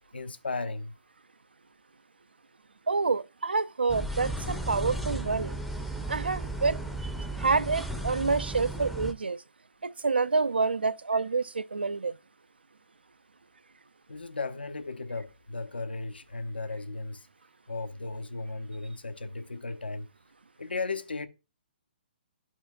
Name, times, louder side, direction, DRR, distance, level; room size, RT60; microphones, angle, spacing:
voice 1, 0.1-0.9 14.1-17.3 17.7-20.1 20.6-21.3, left 3 dB, 70° left, 0.7 m, -35 dB
voice 2, 2.9-5.5 6.1-7.1 7.4-9.4 9.8-12.1, right 4 dB, 75° right, 0.3 m, -28 dB
sound 1, 3.9-9.1, right 2 dB, ahead, 0.5 m, -34 dB
12.0 x 4.4 x 2.4 m
figure-of-eight pair, 130°, 6 cm